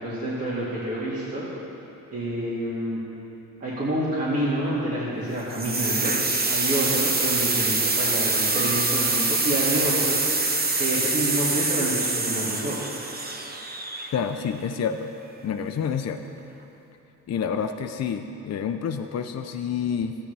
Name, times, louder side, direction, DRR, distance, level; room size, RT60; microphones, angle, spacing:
voice 1, 0.0-1.5 2.1-3.0 3.6-10.2 10.7-12.8, right 1 dB, 40° right, -9 dB, 2.4 m, -28 dB
sound 1, 5.5-14.4, right 3 dB, 25° right, 1.0 m, -25 dB
voice 2, 14.1-15.1 15.4-16.2 17.3-20.2, left 7 dB, 45° left, 6 dB, 0.6 m, -28 dB
13.0 x 8.9 x 3.4 m, 2.9 s
supercardioid pair, 60°, 36 cm